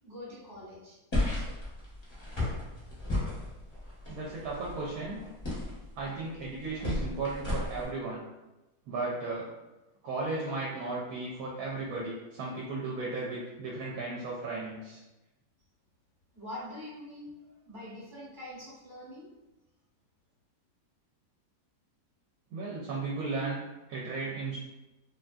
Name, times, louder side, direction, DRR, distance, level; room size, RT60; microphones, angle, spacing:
voice 1, 0.0-1.0 16.3-17.3 17.6-19.3, left 1 dB, 40° right, -8 dB, 0.9 m, -44 dB
sound 1, 1.1-7.9, left 1 dB, 35° left, 0.4 m, -34 dB
voice 2, 4.1-5.2 6.0-8.2 8.9-9.5 10.0-15.0 22.5-23.6 23.9-24.6, right 3 dB, 70° right, -4 dB, 1.0 m, -35 dB
2.7 x 2.5 x 2.2 m, 1.0 s
omnidirectional pair, 1.7 m